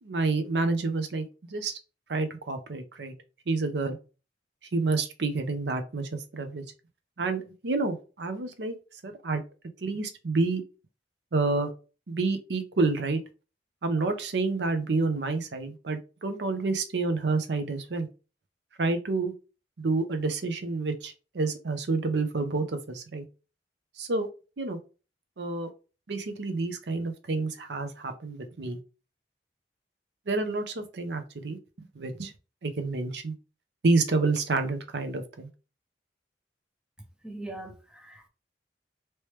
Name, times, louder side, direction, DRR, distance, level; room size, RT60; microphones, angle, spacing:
voice 1, 0.0-1.8 2.1-3.1 3.5-4.0 4.7-6.6 7.2-8.8 9.0-9.4 9.8-10.6 11.3-11.7 12.1-13.2 13.8-18.1 18.8-19.3 19.8-23.2 24.0-24.3 24.6-24.8 25.4-25.7 26.1-28.8 30.3-31.6 32.0-32.3 32.6-33.3 33.8-35.5, right 3 dB, 70° right, 0.6 m, -29 dB
voice 2, 37.2-38.3, right 2 dB, 5° right, 0.6 m, -41 dB
3.0 x 3.0 x 3.2 m
head